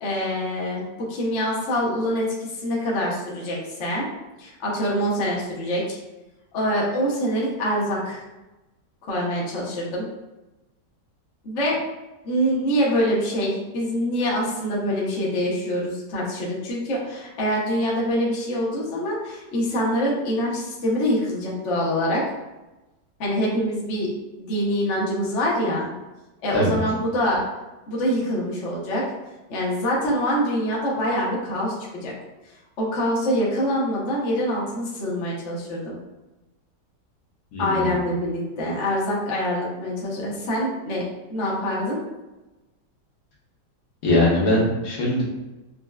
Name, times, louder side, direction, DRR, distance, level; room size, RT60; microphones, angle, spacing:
voice 1, 0.0-4.1 4.4-6.0 6.5-8.2 9.0-10.1 11.4-11.8 12.2-22.2 23.2-24.1 24.4-25.9 26.4-27.4 27.9-29.0 29.5-32.1 32.8-36.0 37.6-41.0 41.3-42.0, equal, 50° left, -4 dB, 1.0 m, -25 dB
voice 2, 37.5-38.0 44.0-45.2, left 1 dB, 70° left, -5 dB, 1.5 m, -21 dB
5.3 x 2.1 x 2.3 m, 1.1 s
omnidirectional pair, 1.9 m